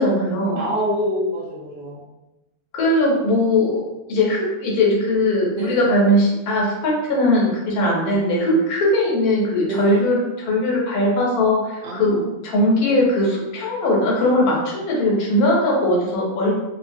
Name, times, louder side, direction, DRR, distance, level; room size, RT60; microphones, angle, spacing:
voice 1, 0.0-0.6 2.7-3.8 4.1-16.5, left 1 dB, 90° left, -3 dB, 1.2 m, -19 dB
voice 2, 0.6-2.0 5.6-5.8 9.6-10.0 11.8-12.3, equal, 50° right, -6 dB, 0.9 m, -26 dB
2.6 x 2.1 x 2.5 m, 1.0 s
omnidirectional pair, 1.5 m